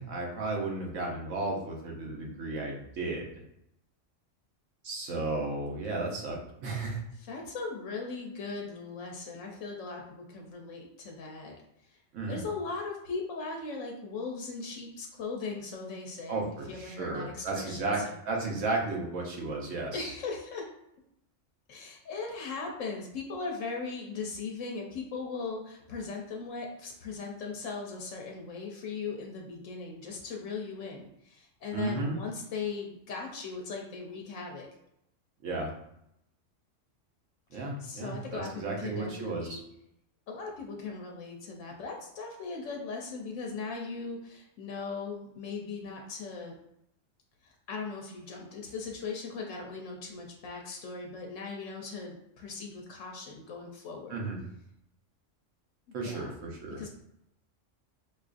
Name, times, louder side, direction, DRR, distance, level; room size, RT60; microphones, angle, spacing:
voice 1, 0.0-3.3 4.8-7.0 12.1-12.4 16.3-18.0 18.3-20.1 31.7-32.2 35.4-35.7 37.5-39.6 54.1-54.4 55.9-56.8, right 3 dB, 85° right, -1 dB, 1.2 m, -34 dB
voice 2, 7.2-11.5 11.9-12.0 12.3-18.2 19.9-20.7 21.7-34.7 37.5-39.6 40.3-46.6 47.4-54.2 56.0-56.3 56.8-56.9, left 4 dB, 85° left, 1 dB, 1.0 m, -39 dB
4.8 x 2.4 x 2.4 m, 0.79 s
omnidirectional pair, 1.3 m